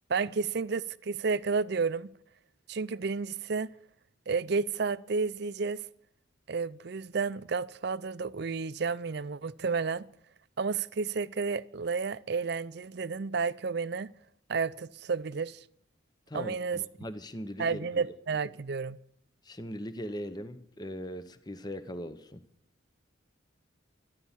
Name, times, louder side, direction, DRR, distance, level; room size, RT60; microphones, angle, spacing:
voice 1, 0.1-2.1 2.7-3.7 4.3-5.8 6.5-10.1 10.6-14.1 14.5-15.6 16.3-16.8 17.6-19.0, right 4 dB, 55° right, 0.5 m, -31 dB
voice 2, 16.3-18.1 19.4-22.4, equal, 20° left, 0.8 m, -40 dB
13.5 x 12.5 x 7.3 m
head